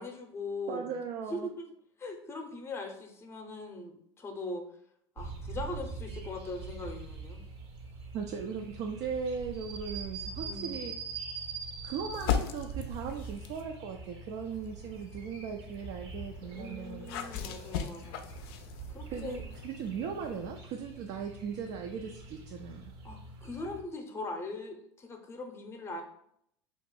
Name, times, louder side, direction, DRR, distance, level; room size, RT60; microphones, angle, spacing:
voice 1, 0.0-0.9 1.3-1.7 2.0-4.6 5.2-7.4 10.4-10.8 16.5-18.3 18.9-19.5 23.0-26.0, left 2 dB, 20° left, 4 dB, 0.6 m, -40 dB
voice 2, 0.7-1.5 8.1-10.9 11.8-17.1 19.1-22.9, right 6 dB, 50° right, 3 dB, 0.4 m, -38 dB
sound 1, 5.2-23.8, right 4 dB, 70° right, 0.8 m, -44 dB
sound 2, 12.1-13.7 14.4-20.6, left 8 dB, 65° left, 0.4 m, -39 dB
2.6 x 2.4 x 3.8 m, 0.71 s
hypercardioid pair, 85°, 14 cm